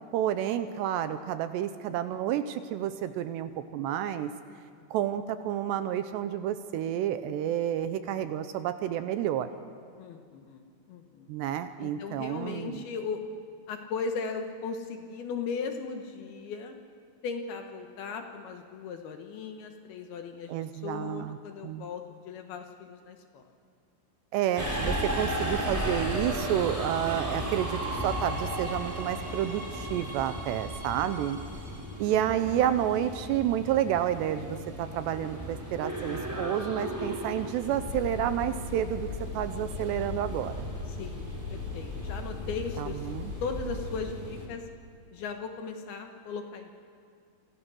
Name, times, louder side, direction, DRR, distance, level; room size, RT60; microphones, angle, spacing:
voice 1, 0.1-4.3 4.9-9.5 11.3-12.8 20.5-21.4 21.6-21.9 24.3-31.4 32.0-39.1 39.3-40.7 42.8-43.3, right 11 dB, 80° right, 10 dB, 2.7 m, -30 dB
voice 2, 10.0-11.3 11.8-13.2 13.7-16.8 17.2-20.5 20.8-23.4 31.7-31.9 41.0-41.3 41.5-43.0 43.4-44.6 45.1-46.7, left 5 dB, 65° left, 5 dB, 2.8 m, -37 dB
Subway metro underground, 24.6-44.5, right 1 dB, 5° right, 2.6 m, -36 dB
sound 1, 37.5-44.0, left 4 dB, 50° left, 7.1 m, -38 dB
27.5 x 25.0 x 6.3 m, 2.2 s
omnidirectional pair, 5.4 m